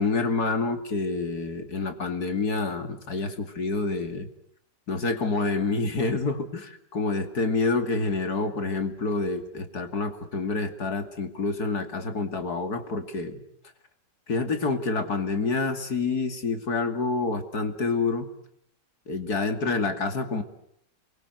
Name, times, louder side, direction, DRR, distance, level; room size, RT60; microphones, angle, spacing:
voice 1, 0.0-4.3 4.9-13.4 14.3-18.3 19.1-20.4, left 3 dB, 55° left, 8 dB, 3.0 m, -27 dB
29.5 x 23.5 x 8.0 m, 0.70 s
omnidirectional pair, 2.0 m